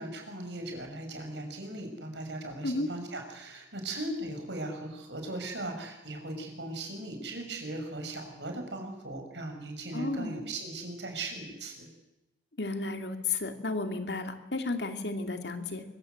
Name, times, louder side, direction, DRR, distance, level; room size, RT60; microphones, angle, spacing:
voice 1, 0.0-11.9, right 2 dB, 75° right, 4 dB, 6.0 m, -38 dB
voice 2, 9.9-10.4 12.6-15.8, left 3 dB, 65° left, 6 dB, 2.6 m, -33 dB
24.0 x 23.5 x 8.0 m, 0.95 s
head